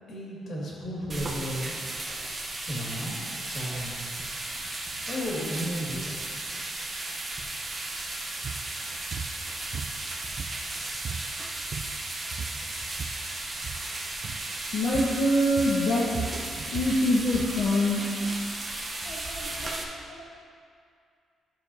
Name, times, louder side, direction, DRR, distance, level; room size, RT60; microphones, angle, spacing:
voice 1, 0.1-1.7 2.5-4.1 5.1-6.3, equal, 50° left, -5 dB, 2.1 m, -34 dB
sound 1, 1.1-19.8, right 2 dB, 20° right, 0.8 m, -35 dB
sound 2, 8.4-8.6 9.1-9.3 9.7-10.7 11.0-11.3 11.6-12.0 12.3-13.2 13.6-13.9 14.2-14.5 14.9-15.2 15.6-17.6, right 6 dB, 35° right, 0.4 m, -36 dB
voice 2, 14.7-16.4 16.7-18.4 19.0-19.8 20.1-20.2, left 1 dB, 65° left, -7 dB, 1.3 m, -25 dB
13.0 x 6.8 x 2.7 m, 2.3 s
cardioid pair, 170°, 0 cm